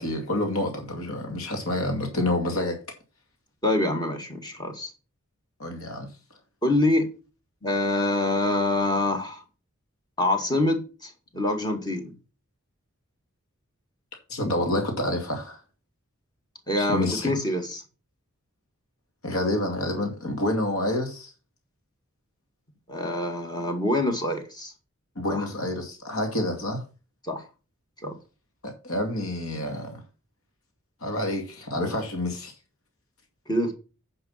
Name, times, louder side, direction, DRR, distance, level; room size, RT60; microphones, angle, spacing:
voice 1, 0.0-2.8 5.6-6.1 14.3-15.6 16.8-17.3 19.2-21.3 25.2-26.8 28.6-30.0 31.0-32.5, left 1 dB, 85° left, 2.4 m, -28 dB
voice 2, 3.6-4.9 6.6-7.1 7.6-9.4 10.2-12.1 16.7-17.8 22.9-24.7 25.3-25.5 27.2-27.4 28.0-28.1 33.5-33.7, left 1 dB, 20° left, 2.1 m, -25 dB
9.5 x 5.5 x 5.7 m
head